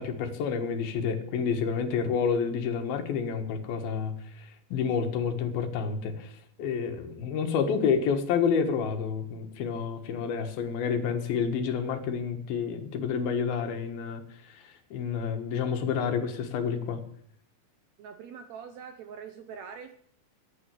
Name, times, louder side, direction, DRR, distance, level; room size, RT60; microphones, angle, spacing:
voice 1, 0.0-6.3 6.6-14.2 14.5-14.6 14.9-17.0, left 6 dB, 90° left, 7 dB, 3.3 m, -29 dB
voice 2, 18.0-19.9, right 7 dB, 75° right, 9 dB, 1.6 m, -43 dB
12.0 x 9.3 x 8.2 m, 0.62 s
omnidirectional pair, 4.1 m